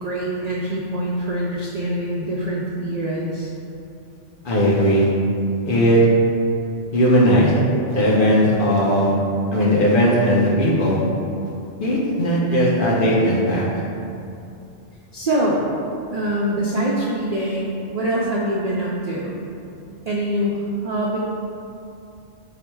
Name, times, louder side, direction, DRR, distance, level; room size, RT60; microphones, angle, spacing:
voice 1, 0.0-3.5 15.1-15.7 16.1-19.4 20.1-21.2, right 1 dB, 70° right, -4 dB, 0.3 m, -24 dB
voice 2, 4.4-5.1 5.7-6.0 6.9-7.5 7.9-9.1 9.5-11.0 11.8-13.6, equal, 50° left, -5 dB, 0.8 m, -17 dB
4.7 x 2.1 x 4.5 m, 2.6 s
omnidirectional pair, 1.2 m